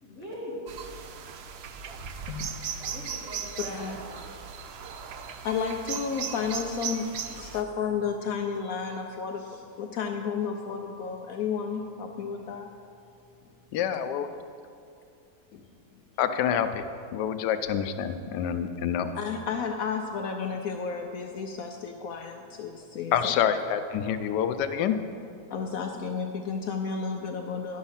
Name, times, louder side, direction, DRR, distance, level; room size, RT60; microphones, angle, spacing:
voice 1, 0.0-0.6 2.9-4.4, equal, 45° right, -6 dB, 2.6 m, -41 dB
sound 1, 0.7-7.6, right 7 dB, 85° right, 0.5 m, -37 dB
voice 2, 3.7-4.0 5.4-12.7 15.5-15.6 19.1-23.3 25.5-27.8, left 6 dB, 70° left, 4 dB, 0.9 m, -32 dB
voice 3, 13.7-14.3 16.2-19.1 23.1-25.0, left 8 dB, 85° left, 9 dB, 1.2 m, -27 dB
10.5 x 6.3 x 5.6 m, 2.4 s
omnidirectional pair, 1.8 m